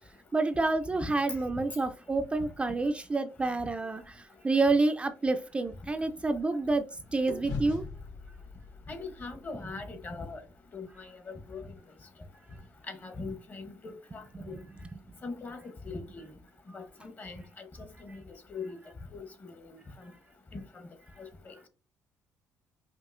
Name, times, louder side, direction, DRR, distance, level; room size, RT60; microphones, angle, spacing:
voice 1, 0.3-6.8 7.1-7.8 14.3-14.6, right 3 dB, 20° right, 0.3 m, -28 dB
voice 2, 1.0-1.6 8.9-10.4 10.7-11.7 12.9-14.6 15.2-16.3 16.7-17.7 18.0-18.2 18.5-18.8 19.1-19.8 20.5-20.9 21.2-21.5, left 3 dB, 30° left, 0.8 m, -41 dB
sound 1, 4.8-6.9 7.3-11.5, left 3 dB, 80° left, 2.3 m, -44 dB
5.4 x 2.7 x 2.5 m
cardioid pair, 130°, 6 cm